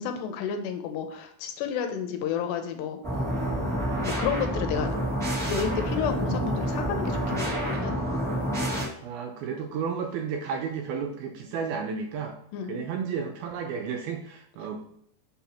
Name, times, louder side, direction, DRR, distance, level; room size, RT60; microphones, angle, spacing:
voice 1, 0.0-3.0 4.0-4.9 5.5-8.0 12.5-12.8, left 7 dB, 90° left, 6 dB, 2.9 m, -31 dB
sound 1, 3.0-8.8, equal, 5° left, 0.5 m, -28 dB
voice 2, 9.0-12.4 12.6-14.8, right 6 dB, 80° right, 2 dB, 2.2 m, -32 dB
6.2 x 5.9 x 4.3 m, 0.72 s
omnidirectional pair, 4.9 m